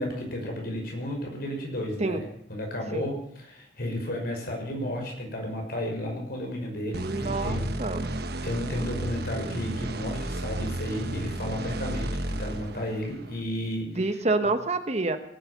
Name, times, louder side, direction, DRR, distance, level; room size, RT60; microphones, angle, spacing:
voice 1, 0.0-7.7 8.4-14.0, left 1 dB, 60° left, 1 dB, 6.0 m, -33 dB
voice 2, 6.9-8.0 14.0-15.2, right 3 dB, 40° right, 9 dB, 1.2 m, -27 dB
sound 1, 6.9-13.4, right 1 dB, 60° right, 1.3 m, -33 dB
18.0 x 10.5 x 7.0 m, 0.72 s
head